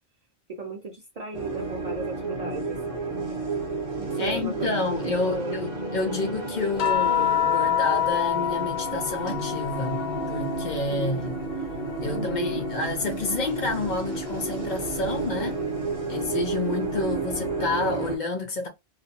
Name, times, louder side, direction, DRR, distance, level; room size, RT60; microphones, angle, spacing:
voice 1, 0.5-2.8 4.0-5.6 10.9-11.5 12.0-12.7, right 2 dB, 50° right, 0.5 m, -36 dB
sound 1, 1.3-18.2, right 3 dB, 35° right, 1.1 m, -31 dB
voice 2, 4.2-11.4 12.0-15.6 16.1-18.7, left 2 dB, 55° left, 0.7 m, -29 dB
sound 2, 6.8-11.3 11.6-13.3 14.8-15.0, left 10 dB, 85° left, 0.9 m, -28 dB
2.4 x 2.1 x 2.7 m
omnidirectional pair, 1.1 m